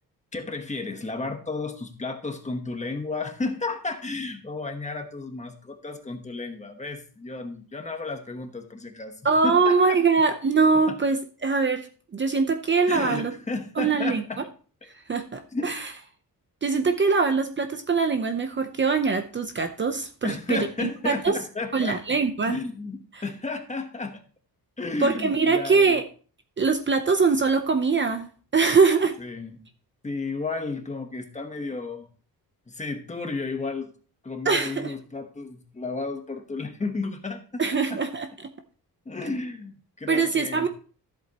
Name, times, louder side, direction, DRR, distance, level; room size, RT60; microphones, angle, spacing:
voice 1, 0.3-10.0 10.9-11.0 12.9-14.5 15.5-15.7 20.2-22.0 22.5-24.2 24.8-26.0 29.2-29.6 30.0-32.1 32.7-33.9 34.2-38.0 39.0-40.7, left 3 dB, 20° left, 5 dB, 1.1 m, -33 dB
voice 2, 9.2-11.2 11.4-11.8 12.1-13.3 13.8-14.2 15.1-15.8 16.6-21.4 21.7-22.6 25.0-26.0 26.6-28.3 28.5-29.1 34.4-34.9 37.6-38.3 40.1-40.7, right 4 dB, 30° right, 7 dB, 0.7 m, -22 dB
13.5 x 7.8 x 3.0 m, 0.40 s
wide cardioid pair, 170°, 38 cm